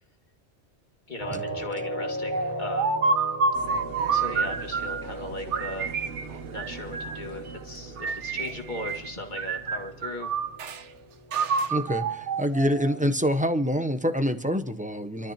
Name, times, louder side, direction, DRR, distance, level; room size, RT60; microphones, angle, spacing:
voice 1, 1.1-3.0 4.1-6.0 6.4-10.4, left 2 dB, 40° left, 2 dB, 2.4 m, -37 dB
sound 1, 1.2-14.2, right 1 dB, 20° left, 2.4 m, -39 dB
sound 2, 2.3-5.1 5.5-7.3 8.0-9.1 9.4-10.8 11.3-13.1, right 4 dB, 85° right, 1.2 m, -28 dB
sound 3, 3.5-11.3, right 6 dB, 60° right, 0.9 m, -44 dB
voice 2, 11.7-15.3, equal, 10° right, 9 dB, 0.7 m, -26 dB
27.0 x 13.0 x 2.9 m, 0.71 s
omnidirectional pair, 1.2 m